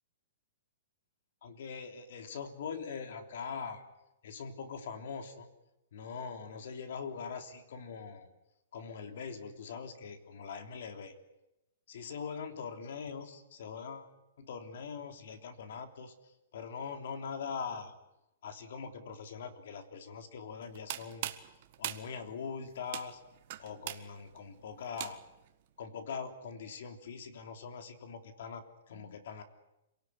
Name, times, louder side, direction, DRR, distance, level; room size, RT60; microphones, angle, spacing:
voice 1, 1.4-3.8 4.2-5.5 5.9-8.3 8.7-11.2 11.9-18.0 18.4-21.3 21.8-23.2 23.6-25.2 25.8-29.4, left 6 dB, 65° left, 6 dB, 3.3 m, -42 dB
sound 1, 20.6-25.5, right 14 dB, 45° right, 1.7 m, -42 dB
27.0 x 18.0 x 9.8 m, 0.93 s
hypercardioid pair, 160°, 0 cm